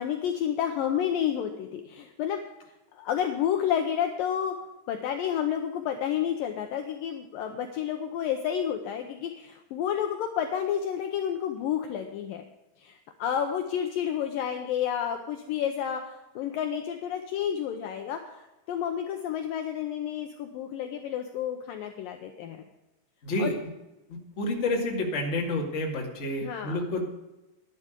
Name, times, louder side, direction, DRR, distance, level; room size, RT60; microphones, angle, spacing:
voice 1, 0.0-2.4 2.9-4.6 4.9-12.4 12.8-22.6 23.4-23.6 26.4-26.8, left 9 dB, 85° left, 5 dB, 2.0 m, -30 dB
voice 2, 23.2-23.5 24.1-27.0, left 2 dB, 30° left, 0 dB, 1.4 m, -29 dB
12.0 x 11.0 x 5.1 m, 1.0 s
omnidirectional pair, 4.9 m